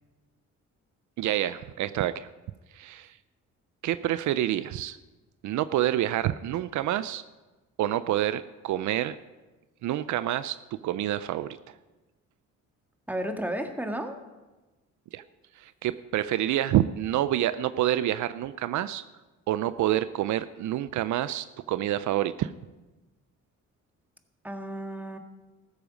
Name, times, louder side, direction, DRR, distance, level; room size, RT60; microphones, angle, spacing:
voice 1, 1.2-2.3 2.7-3.1 3.8-5.0 5.4-7.2 7.8-9.2 9.8-11.6 15.1-15.2 15.6-19.0 19.5-22.5, right 13 dB, 70° right, 14 dB, 0.5 m, -27 dB
voice 2, 13.1-14.2 24.4-25.2, right 1 dB, 5° right, 5 dB, 1.7 m, -33 dB
14.5 x 13.5 x 5.1 m, 1.2 s
cardioid pair, 90°, 30 cm